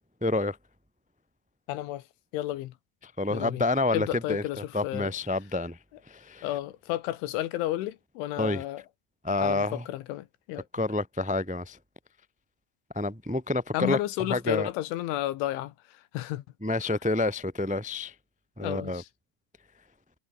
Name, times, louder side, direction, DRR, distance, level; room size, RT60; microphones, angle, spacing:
voice 1, 0.2-0.6 3.0-5.8 6.1-6.5 8.4-8.6 9.2-9.8 10.7-11.8 12.9-14.0 14.3-14.7 16.6-18.1 18.6-19.0, left 2 dB, 5° right, 1.2 m, -28 dB
voice 2, 1.7-2.0 2.3-2.7 3.3-3.6 3.9-5.1 6.4-8.8 9.4-10.7 13.7-15.7 16.1-16.4 18.6-19.1, left 15 dB, 75° left, 3.5 m, -32 dB
omnidirectional pair, 5.8 m